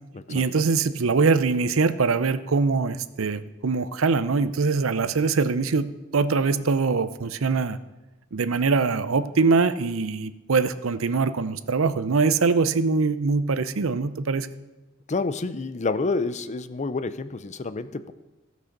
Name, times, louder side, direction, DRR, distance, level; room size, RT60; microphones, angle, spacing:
voice 1, 0.3-7.8 8.3-14.5, right 4 dB, 80° right, 13 dB, 0.6 m, -23 dB
voice 2, 15.1-18.1, left 3 dB, 35° left, 13 dB, 0.5 m, -28 dB
15.5 x 6.3 x 6.6 m, 1.1 s
head